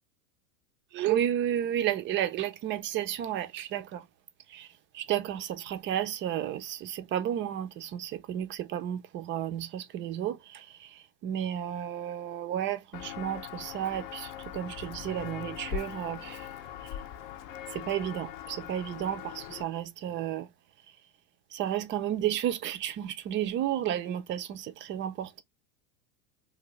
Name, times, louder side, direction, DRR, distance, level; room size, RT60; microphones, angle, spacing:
voice 1, 0.9-4.1 4.5-4.7 4.9-16.5 17.7-20.5 21.5-25.4, right 11 dB, 30° right, 0.4 m, -32 dB
Walk footsteps, 12.9-19.6, left 11 dB, 45° left, 0.6 m, -41 dB
2.6 x 2.5 x 3.0 m
hypercardioid pair, 105°, 42 cm